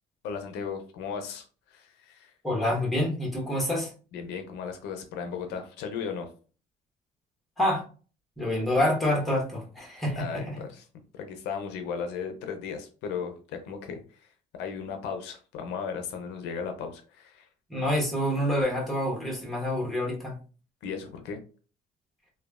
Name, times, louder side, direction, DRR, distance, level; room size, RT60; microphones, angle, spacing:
voice 1, 0.2-2.3 4.1-6.3 10.2-10.9 11.1-17.5 20.8-21.4, left 6 dB, 90° left, 6 dB, 0.5 m, -36 dB
voice 2, 2.4-3.9 7.6-7.8 8.4-10.6 17.7-20.4, left 1 dB, ahead, -3 dB, 1.1 m, -27 dB
2.9 x 2.2 x 2.3 m, 0.38 s
cardioid pair, 110°, 17 cm